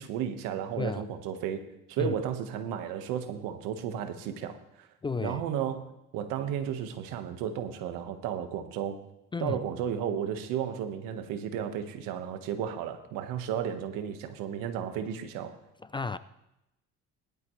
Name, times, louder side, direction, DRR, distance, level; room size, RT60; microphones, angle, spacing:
voice 1, 0.0-1.6 1.9-4.9 5.2-9.0 9.4-15.6, right 9 dB, 85° right, 8 dB, 1.4 m, -33 dB
voice 2, 5.0-5.4 9.3-9.6 15.8-16.2, left 4 dB, 15° left, 14 dB, 0.3 m, -32 dB
19.0 x 12.0 x 3.2 m, 0.88 s
cardioid pair, 105°, 32 cm